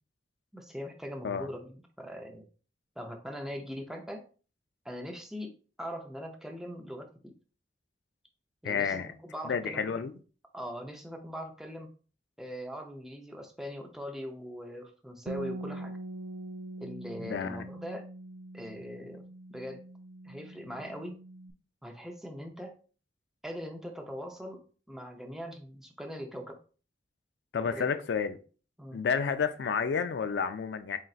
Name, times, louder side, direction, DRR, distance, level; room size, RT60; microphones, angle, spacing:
voice 1, 0.5-2.5 3.0-4.2 4.8-7.3 8.6-10.0 10.5-11.9 12.4-15.9 16.8-18.1 18.5-19.2 19.5-19.8 20.2-21.2 21.8-22.8 23.4-24.6 24.9-26.6 27.6-27.9 28.8-29.0, equal, 5° right, 0.5 m, -41 dB
voice 2, 8.6-9.1 9.4-10.1 17.2-17.7 27.5-28.4 28.9-31.0, left 6 dB, 80° left, 0.4 m, -30 dB
Bass guitar, 15.3-21.5, right 2 dB, 70° right, 0.4 m, -43 dB
4.2 x 3.9 x 2.4 m
head